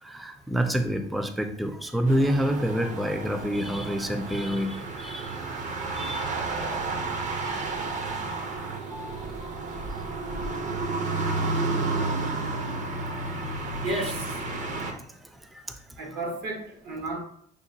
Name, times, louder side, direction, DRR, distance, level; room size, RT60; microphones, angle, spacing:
voice 1, 0.0-6.3 7.4-7.6 8.8-9.6 10.1-10.2 11.8-12.0 12.4-12.5 12.9-13.6 13.9-14.1 15.2-15.8, equal, ahead, 7 dB, 0.3 m, -29 dB
sound 1, 2.1-14.9, right 3 dB, 45° right, 0.7 m, -31 dB
voice 2, 13.8-14.4 16.0-17.2, right 2 dB, 70° right, 1 dB, 1.2 m, -32 dB
6.5 x 2.2 x 2.7 m, 0.63 s
cardioid pair, 110°, 17 cm